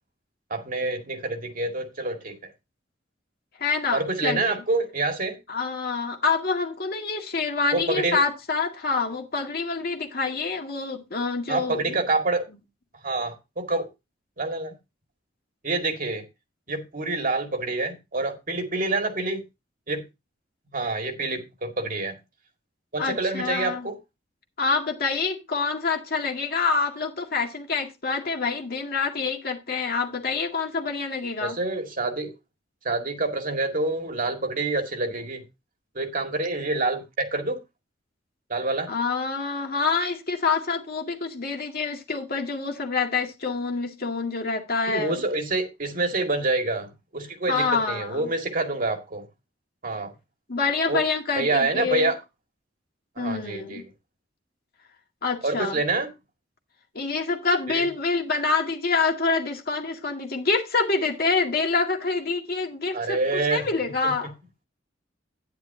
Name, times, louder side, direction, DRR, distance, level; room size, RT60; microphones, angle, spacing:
voice 1, 0.5-2.5 3.9-5.4 7.7-8.2 11.5-12.5 13.0-13.9 14.4-14.8 15.6-16.2 16.7-19.4 19.9-20.0 20.7-22.2 22.9-24.0 31.4-32.3 32.8-35.4 36.0-37.6 38.5-38.9 44.9-49.3 49.8-50.1 50.9-51.0 51.4-52.2 53.2-53.9 55.4-56.1 57.7-57.9 62.9-63.7 64.0-64.1, right 2 dB, 45° right, 2.1 m, -27 dB
voice 2, 3.6-4.6 5.5-12.0 23.0-23.9 24.6-31.6 38.9-45.2 47.5-48.3 50.5-52.1 53.2-53.8 55.2-55.8 56.9-64.3, left 4 dB, 50° left, 2.0 m, -26 dB
10.5 x 10.5 x 2.7 m
head